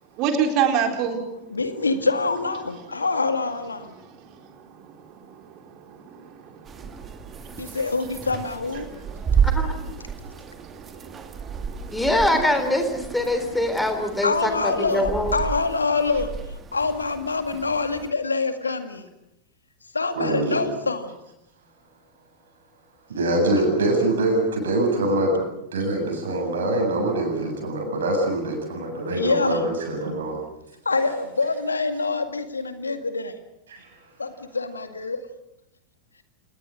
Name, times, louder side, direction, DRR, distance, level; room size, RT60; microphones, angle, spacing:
voice 1, 0.2-1.2 4.0-7.8 8.9-9.5 9.9-12.0, right 7 dB, 40° right, 4 dB, 4.1 m, -30 dB
voice 2, 1.5-3.9 7.6-8.9 14.2-19.0 19.9-21.2 29.1-29.7 30.9-33.3 34.2-35.2, left 3 dB, 75° left, 8 dB, 2.0 m, -25 dB
sound 1, 6.7-18.1, right 7 dB, 20° right, 2.1 m, -31 dB
voice 3, 11.9-15.3, left 1 dB, 5° left, 6 dB, 3.5 m, -23 dB
voice 4, 20.2-20.6 23.1-25.4 25.7-30.4 33.7-33.9, right 1 dB, 65° right, 3 dB, 7.7 m, -24 dB
28.5 x 20.0 x 6.4 m, 0.84 s
figure-of-eight pair, 90°, 0 cm